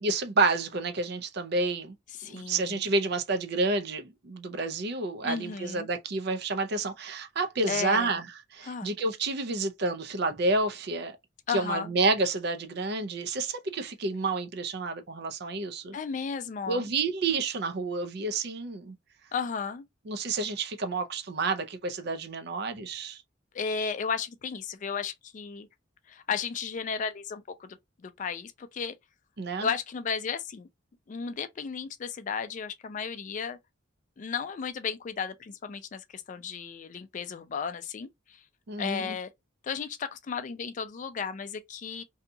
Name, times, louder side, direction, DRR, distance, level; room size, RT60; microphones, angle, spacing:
voice 1, 0.0-1.9 2.2-8.3 8.5-11.2 11.5-16.0 16.7-19.0 20.1-23.2 29.4-29.7 38.7-39.2, right 3 dB, 60° right, 0.5 m, -29 dB
voice 2, 2.1-2.8 5.2-5.9 7.7-8.1 8.6-8.9 11.5-11.9 15.9-16.9 19.3-19.8 23.5-25.7 26.1-27.8 28.0-28.9 29.6-30.7 31.1-33.6 34.2-38.4 38.8-39.3 39.6-42.0, left 6 dB, 40° left, 0.3 m, -34 dB
2.7 x 2.3 x 2.6 m
head